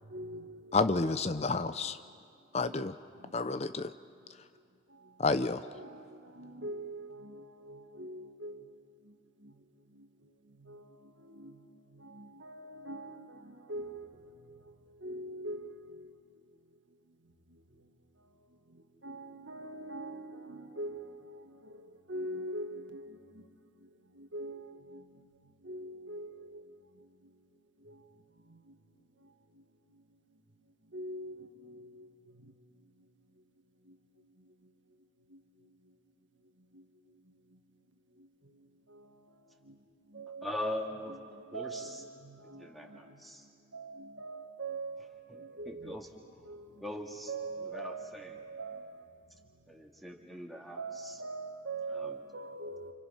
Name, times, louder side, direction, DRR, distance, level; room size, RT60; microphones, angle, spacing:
voice 1, 0.1-0.8 2.6-2.8 5.4-8.6 10.7-10.8 11.2-11.5 12.0-14.1 15.0-15.9 19.0-21.0 22.1-23.2 24.2-25.0 25.7-26.6 30.9-31.9 40.1-43.0 43.7-45.0 45.3-45.9 46.5-46.7 47.3-48.9 50.8-52.9, right 2 dB, 80° right, 1.8 m, -42 dB
voice 2, 0.7-2.0 2.5-2.9 3.3-3.9 5.2-5.6, left 3 dB, 35° left, 0.6 m, -29 dB
voice 3, 40.4-41.1 41.5-42.0 42.6-43.5 45.3-46.1 46.8-47.3 47.6-48.3 49.7-51.2 51.9-52.2, left 1 dB, ahead, 2.2 m, -41 dB
29.5 x 29.0 x 5.6 m
head